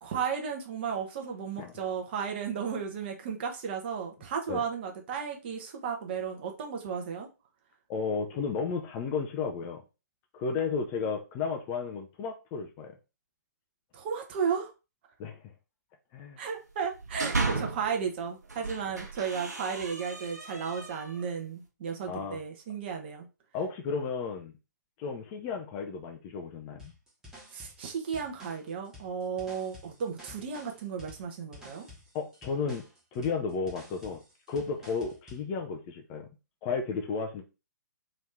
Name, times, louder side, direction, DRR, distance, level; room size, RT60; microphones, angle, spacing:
voice 1, 0.0-7.3 13.9-14.7 16.4-23.3 27.5-31.9, right 6 dB, 35° right, 0.8 m, -34 dB
voice 2, 7.9-9.8 10.3-13.0 15.2-15.4 16.1-16.4 22.1-22.4 23.5-24.5 25.0-26.9 32.1-32.8 33.1-34.2 34.5-36.3 36.6-37.4, left 5 dB, 20° left, 0.3 m, -33 dB
sound 1, 16.8-17.9 18.4-21.3, right 3 dB, 65° right, 1.0 m, -35 dB
sound 2, 26.8-35.5, left 1 dB, 5° right, 1.0 m, -51 dB
3.0 x 2.6 x 3.3 m
figure-of-eight pair, 125°, 10 cm